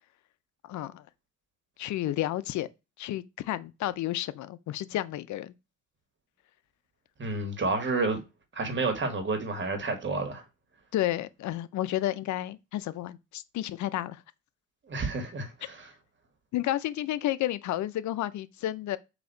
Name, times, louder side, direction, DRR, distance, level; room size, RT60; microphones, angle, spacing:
voice 1, 0.6-1.0 1.8-2.7 3.0-5.5 10.9-14.2 16.5-19.0, left 14 dB, 70° left, 0.5 m, -31 dB
voice 2, 7.2-8.2 8.5-10.4 14.9-15.9, right 3 dB, 40° right, 1.6 m, -30 dB
4.0 x 2.8 x 4.5 m
cardioid pair, 90°, 30 cm